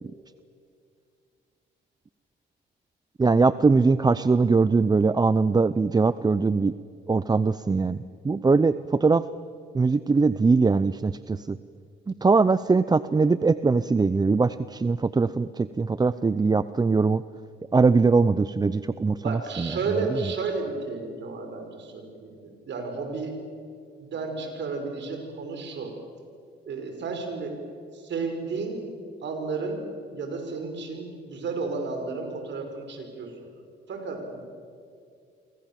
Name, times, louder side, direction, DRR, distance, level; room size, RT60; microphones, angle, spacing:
voice 1, 3.2-6.7 7.1-8.0 8.2-9.2 9.7-11.6 12.1-17.2 17.7-19.7, right 4 dB, 20° right, 15 dB, 0.6 m, -21 dB
voice 2, 19.2-23.4 24.0-25.9 26.7-27.6 27.9-28.8 29.2-29.9 30.1-33.5 33.9-34.4, right 4 dB, 65° right, 5 dB, 5.7 m, -32 dB
29.5 x 24.0 x 7.5 m, 2.3 s
cardioid pair, 90°, 20 cm